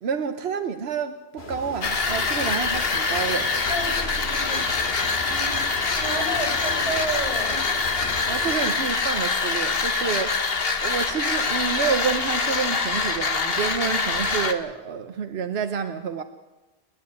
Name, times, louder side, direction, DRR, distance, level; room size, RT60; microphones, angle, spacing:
voice 1, 0.0-3.5 8.3-10.4 10.8-16.2, right 6 dB, 90° right, 1.2 m, -28 dB
sound 1, 1.4-8.7, left 2 dB, 90° left, 2.6 m, -38 dB
sound 2, 1.8-14.5, left 4 dB, 70° left, 1.6 m, -25 dB
voice 2, 3.7-4.6 5.2-5.6 6.0-7.6, right 2 dB, 45° right, 6.8 m, -31 dB
29.0 x 10.5 x 9.7 m
omnidirectional pair, 1.0 m